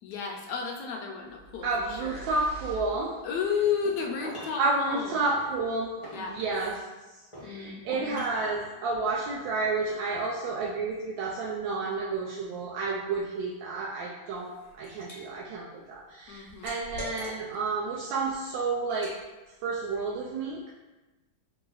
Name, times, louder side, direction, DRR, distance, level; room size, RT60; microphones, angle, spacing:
voice 1, 0.0-2.3 3.2-5.3 6.1-6.5 7.4-8.2 16.3-16.7, left 6 dB, 75° left, 1 dB, 1.0 m, -33 dB
sound 1, 1.3-3.7, right 2 dB, 55° right, 0.8 m, -45 dB
voice 2, 1.6-3.1 4.6-6.7 7.4-19.1 19.6-20.7, right 3 dB, 75° right, -3 dB, 1.2 m, -30 dB
sound 2, 3.6-4.7 5.3-6.9 7.3-8.7, equal, 20° left, 1.0 m, -44 dB
Liquid, 14.4-15.2 15.6-17.7 18.1-18.3 18.9-19.2, left 1 dB, 40° left, 0.9 m, -43 dB
4.0 x 2.9 x 3.8 m, 1.1 s
omnidirectional pair, 2.2 m